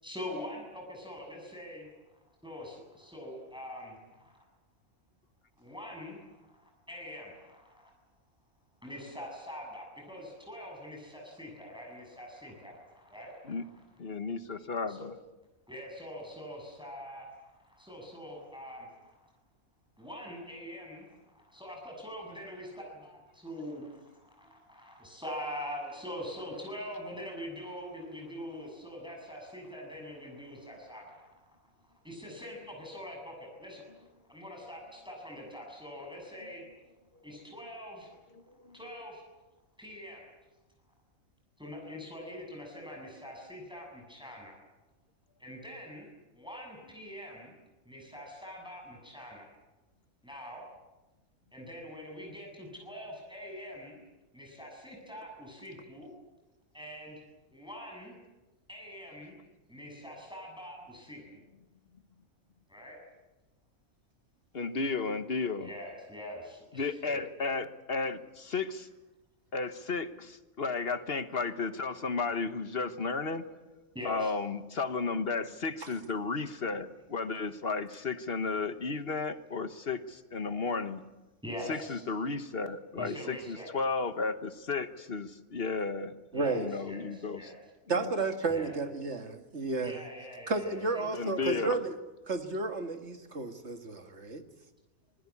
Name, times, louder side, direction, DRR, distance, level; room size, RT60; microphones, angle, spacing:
voice 1, 0.0-1.9 2.4-4.5 5.6-7.9 8.8-13.8 14.9-15.1 15.7-19.3 20.0-31.4 31.8-33.9 34.3-36.6 37.2-38.1 38.7-39.2 39.8-40.3 41.6-44.6 45.4-46.1 46.3-47.5 47.9-49.5 50.2-50.6 51.5-54.0 54.3-56.1 56.7-57.2 57.5-58.1 58.7-59.4 59.7-61.2 62.7-63.0 65.6-67.2 73.1-74.3 81.4-82.1 83.0-83.7 86.3-87.6 88.5-88.7 89.8-91.1 91.3-91.6, equal, 5° right, 0 dB, 7.0 m, -44 dB
voice 2, 14.0-15.1 38.6-38.8 64.5-65.7 66.7-68.9 69.5-73.4 74.0-81.0 81.7-86.1 86.6-87.4 87.9-88.1 91.1-91.8, left 4 dB, 45° left, 10 dB, 1.4 m, -33 dB
voice 3, 86.3-86.7 87.9-90.0 90.5-92.0 92.3-94.4, right 3 dB, 55° right, 6 dB, 2.2 m, -32 dB
25.5 x 20.5 x 8.5 m, 1.1 s
omnidirectional pair, 1.4 m